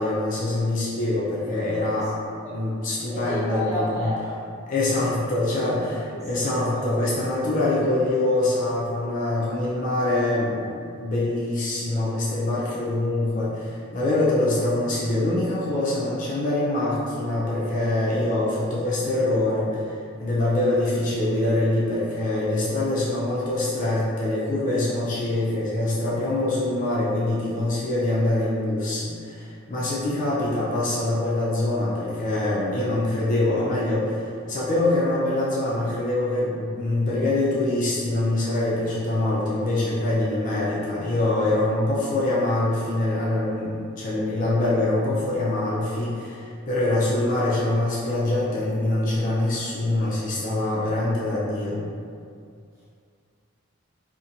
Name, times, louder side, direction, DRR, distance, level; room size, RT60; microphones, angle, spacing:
voice 1, 0.0-2.1 2.5-4.0 4.7-5.9 6.3-51.8, left 2 dB, 40° left, -7 dB, 0.3 m, -24 dB
voice 2, 1.5-2.1 2.4-2.6 2.9-4.4 5.1-5.2 5.8-7.0 52.7-52.8, equal, 15° right, -11 dB, 0.8 m, -33 dB
2.4 x 2.1 x 2.7 m, 2.3 s
head